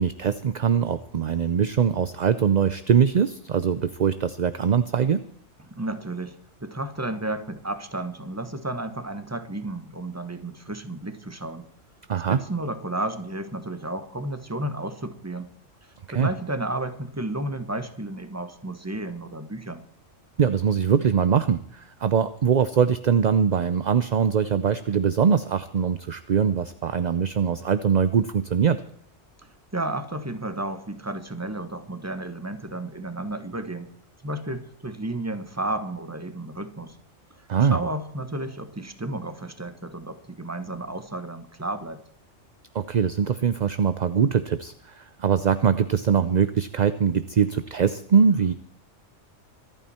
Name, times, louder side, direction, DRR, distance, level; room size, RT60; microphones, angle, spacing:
voice 1, 0.0-5.2 12.1-12.4 16.1-16.3 20.4-28.8 37.5-37.8 42.7-48.5, right 7 dB, 45° right, 13 dB, 0.6 m, -22 dB
voice 2, 5.7-11.7 12.3-15.5 15.8-19.8 29.7-33.9 34.2-37.0 37.4-42.0, right 1 dB, 15° right, 10 dB, 1.3 m, -32 dB
25.0 x 9.2 x 4.3 m, 0.66 s
omnidirectional pair, 1.2 m